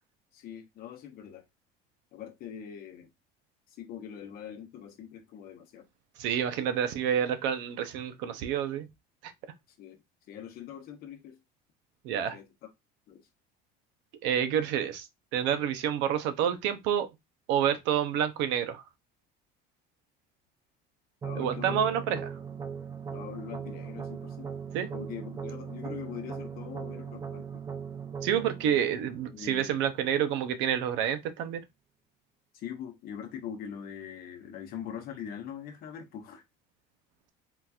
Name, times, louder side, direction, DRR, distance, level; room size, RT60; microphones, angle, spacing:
voice 1, 0.3-1.4 2.1-3.1 3.8-5.9 9.8-10.0 10.3-11.4 12.3-12.7 13.1-13.3 21.2-21.8 22.1-22.2 23.1-24.5 24.9-27.6 28.7-28.8 29.3-29.9 32.5-36.4, left 9 dB, 45° left, 0.9 m, -42 dB
voice 2, 6.2-8.9 12.0-12.4 14.2-15.1 15.3-17.1 17.5-18.8 21.4-22.3 24.7-24.9 28.2-31.6, right 9 dB, 65° right, 0.6 m, -28 dB
sound 1, 21.2-30.2, right 7 dB, 15° right, 0.3 m, -39 dB
3.8 x 2.8 x 2.3 m
cardioid pair, 165°, 21 cm